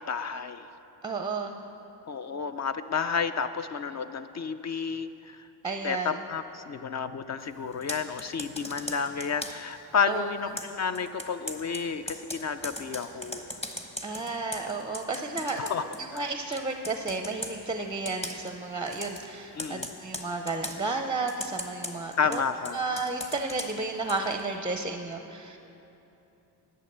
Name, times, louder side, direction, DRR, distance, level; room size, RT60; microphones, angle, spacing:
voice 1, 0.1-0.7 2.1-5.5 5.8-13.5 15.6-16.2 16.5-16.6 19.6-19.9 22.2-22.8, left 6 dB, 40° left, 11 dB, 0.4 m, -31 dB
voice 2, 1.0-1.6 5.6-6.2 10.1-10.3 14.0-15.6 16.0-22.4 22.7-25.6, right 3 dB, 10° right, 5 dB, 0.5 m, -32 dB
Computer keyboard, 7.7-9.7 10.6-16.3 16.5-17.6 18.1-18.5 18.9-19.3 19.6-20.8 21.3-24.4, left 1 dB, 15° left, 1.0 m, -39 dB
11.0 x 8.5 x 6.7 m, 3.0 s
cardioid pair, 85°, 45 cm